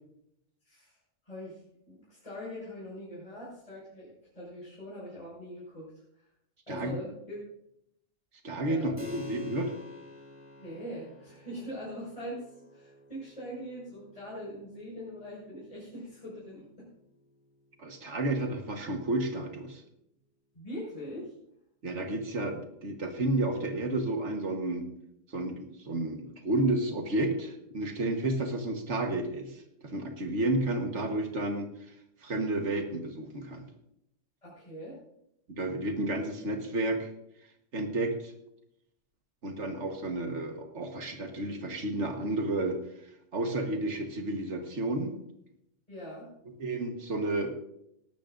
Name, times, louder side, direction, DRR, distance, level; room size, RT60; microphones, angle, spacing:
voice 1, 0.6-1.0 1.2-1.6 1.9-6.0 6.7-7.4 8.7-8.9 10.6-12.4 12.7-16.9 20.5-21.3 34.4-35.0 45.9-46.3, equal, 25° left, -8 dB, 5.6 m, -42 dB
voice 2, 8.4-9.7 17.8-19.8 21.8-24.9 25.3-31.7 32.2-33.6 35.5-37.1 37.7-38.3 39.4-42.8 43.3-45.1 46.6-47.5, right 2 dB, 60° right, 4 dB, 1.7 m, -31 dB
Keyboard (musical), 9.0-19.2, left 3 dB, 10° right, 2.8 m, -50 dB
18.0 x 12.0 x 2.6 m, 0.78 s
omnidirectional pair, 1.4 m